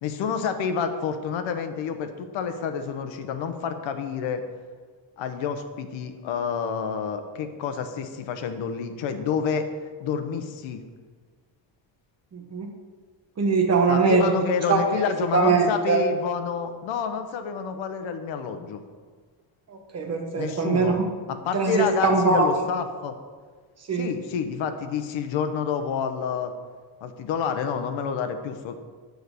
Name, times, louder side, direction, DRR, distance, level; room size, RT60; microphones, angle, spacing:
voice 1, 0.0-4.4 5.2-9.7 10.0-10.8 13.9-18.8 20.3-21.0 21.3-23.2 23.9-26.5 27.0-28.7, left 6 dB, 80° left, 8 dB, 1.0 m, -29 dB
voice 2, 12.3-12.7 13.4-14.3 14.7-14.8 15.3-16.0 19.7-21.0 21.5-22.6 23.9-24.1, right 4 dB, 35° right, 3 dB, 1.1 m, -22 dB
9.1 x 4.7 x 6.8 m, 1.5 s
cardioid pair, 160°, 45 cm